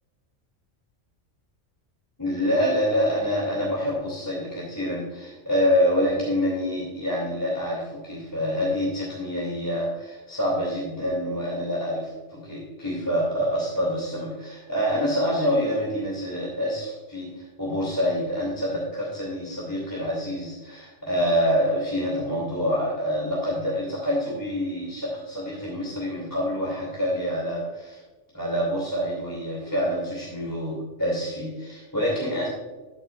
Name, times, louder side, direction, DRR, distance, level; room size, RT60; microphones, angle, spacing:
voice 1, 2.2-28.0 28.3-32.5, equal, 15° left, -5 dB, 2.8 m, -26 dB
13.5 x 8.9 x 2.5 m, 1.2 s
omnidirectional pair, 1.3 m